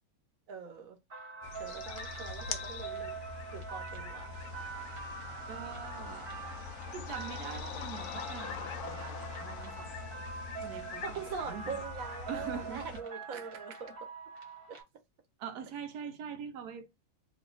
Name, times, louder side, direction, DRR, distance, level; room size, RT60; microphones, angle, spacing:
voice 1, 0.5-1.0 1.6-3.1 3.5-4.3 11.0-13.9 14.7-14.8, right 5 dB, 65° right, 1.2 m, -42 dB
sound 1, 1.1-14.8, right 4 dB, 40° right, 1.2 m, -44 dB
sound 2, 1.4-13.0, left 6 dB, 90° left, 1.2 m, -44 dB
sound 3, 4.3-11.5, left 7 dB, 65° left, 0.8 m, -47 dB
voice 2, 5.5-6.4 6.9-9.9 10.6-11.7 12.3-12.9 13.3-13.8 15.4-16.9, right 7 dB, 90° right, 1.3 m, -43 dB
3.1 x 2.8 x 3.8 m
omnidirectional pair, 1.6 m